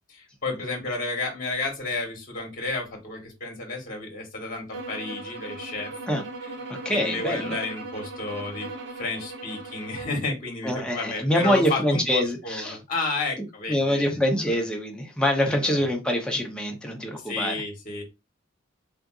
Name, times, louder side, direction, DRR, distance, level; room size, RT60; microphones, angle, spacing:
voice 1, 0.1-5.9 6.4-6.5 6.9-14.6 15.4-15.9 17.1-18.0, left 3 dB, 40° left, 1.1 m, -32 dB
sound 1, 4.7-10.2, right 3 dB, 60° right, 0.7 m, -38 dB
voice 2, 6.8-7.5 10.6-12.8 13.7-17.5, left 1 dB, 5° left, 0.6 m, -25 dB
3.7 x 2.4 x 2.3 m
head